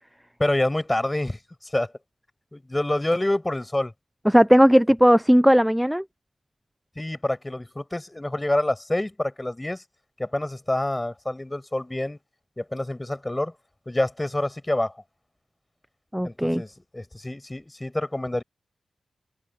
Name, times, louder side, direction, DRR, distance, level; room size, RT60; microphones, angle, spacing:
voice 1, 0.4-1.4 1.7-1.9 2.5-3.9 7.0-9.8 10.2-12.2 12.6-13.5 13.9-14.9 16.2-18.4, left 1 dB, 15° left, 6.5 m, -27 dB
voice 2, 4.3-6.0 16.1-16.6, equal, 5° right, 0.5 m, -17 dB
open air
cardioid pair, 75°, 0 cm